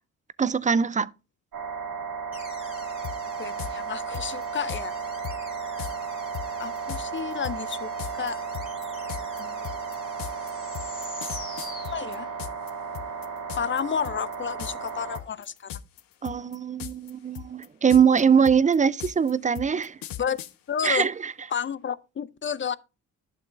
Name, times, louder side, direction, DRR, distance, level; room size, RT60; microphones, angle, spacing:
voice 1, 0.4-1.1 16.2-20.0 20.8-21.3, right 7 dB, 20° right, 0.4 m, -22 dB
sound 1, 1.5-15.2, right 5 dB, 70° right, 2.0 m, -34 dB
sound 2, 2.3-12.6, left 1 dB, 15° left, 2.5 m, -46 dB
sound 3, 3.0-3.2 3.6-3.7 4.1-4.8 5.2-5.4 5.8-5.9 6.3-12.7 12.9-13.8 14.0-14.3 14.6-14.9 15.1-16.0 16.2-17.1 17.3-20.5, left 11 dB, 70° left, 0.7 m, -37 dB
voice 2, 3.4-4.9 6.6-8.4 9.4-9.8 11.9-12.3 13.6-15.8 20.2-20.4 20.7-21.1 21.5-22.8, left 7 dB, 35° left, 0.5 m, -31 dB
11.5 x 6.6 x 2.5 m
supercardioid pair, 50°, 36 cm